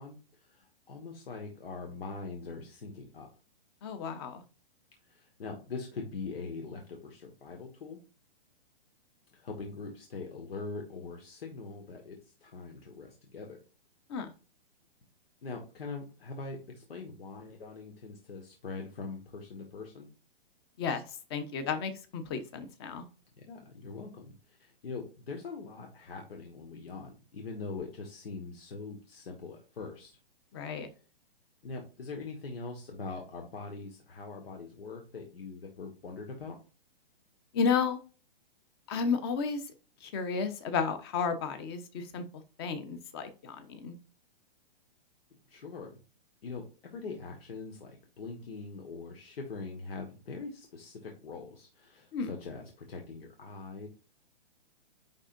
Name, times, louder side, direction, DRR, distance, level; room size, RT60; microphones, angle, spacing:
voice 1, 0.0-3.3 5.1-8.0 9.3-13.6 15.4-20.1 23.4-30.2 31.6-36.6 45.5-46.0 46.4-53.9, left 4 dB, 85° left, 2 dB, 1.6 m, -42 dB
voice 2, 3.8-4.4 14.1-14.3 20.8-21.0 21.3-23.0 30.5-30.9 37.5-38.0 38.9-39.6 40.0-42.2 42.6-43.9 52.1-52.3, left 5 dB, 25° left, 9 dB, 0.9 m, -32 dB
9.8 x 3.7 x 2.6 m, 0.35 s
hypercardioid pair, 165°, 29 cm